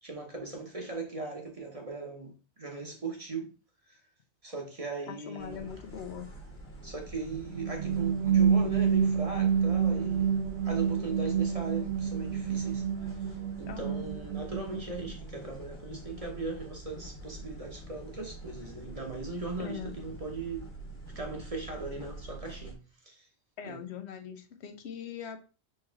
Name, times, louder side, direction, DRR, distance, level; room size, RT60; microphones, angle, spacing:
voice 1, 0.0-3.5 3.9-4.0 4.4-5.7 6.8-10.3 10.6-12.8 13.6-20.7 21.1-22.8 23.0-23.3 23.6-23.8, right 3 dB, 35° right, 1.0 m, -39 dB
voice 2, 5.1-6.3 13.7-14.0 19.6-19.9 23.6-25.4, left 8 dB, 75° left, 0.9 m, -41 dB
sound 1, 5.4-22.7, right 2 dB, 45° left, 1.5 m, -46 dB
sound 2, 7.3-15.1, right 7 dB, 85° right, 0.9 m, -28 dB
4.4 x 3.1 x 3.4 m
omnidirectional pair, 1.1 m